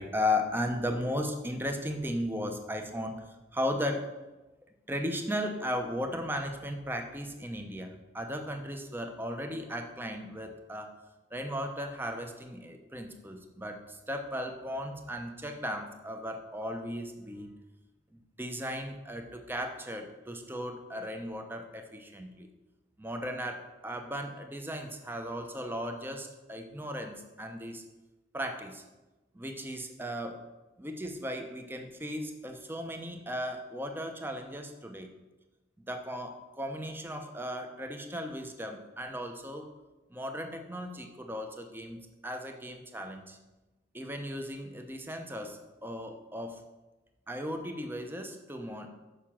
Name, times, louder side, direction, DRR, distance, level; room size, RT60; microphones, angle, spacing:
voice 1, 0.0-3.2 3.5-4.1 4.9-10.9 11.3-17.5 18.1-22.5 23.0-27.8 28.3-28.8 29.3-30.4 30.8-35.2 35.8-39.7 40.1-43.4 43.9-46.6 47.3-48.9, equal, 10° right, 5 dB, 0.8 m, -36 dB
6.7 x 5.8 x 7.4 m, 1.1 s
head